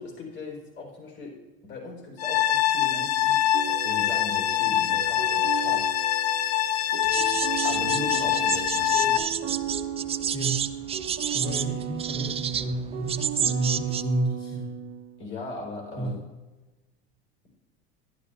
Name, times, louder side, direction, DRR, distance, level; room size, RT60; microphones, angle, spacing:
voice 1, 0.0-1.3 1.6-3.4 3.8-5.9 7.6-9.2 15.2-16.2, left 3 dB, 40° left, -1 dB, 4.2 m, -38 dB
sound 1, 2.2-9.2, left 11 dB, 85° left, 0.7 m, -24 dB
sound 2, 3.5-15.3, right 8 dB, 45° right, 1.3 m, -36 dB
sound 3, 7.0-14.0, right 8 dB, 20° right, 0.4 m, -30 dB
voice 2, 10.3-10.6 11.3-14.7 16.0-16.1, right 2 dB, 15° left, -4 dB, 2.5 m, -30 dB
12.0 x 11.0 x 3.4 m, 1.2 s
hypercardioid pair, 90°, 30 cm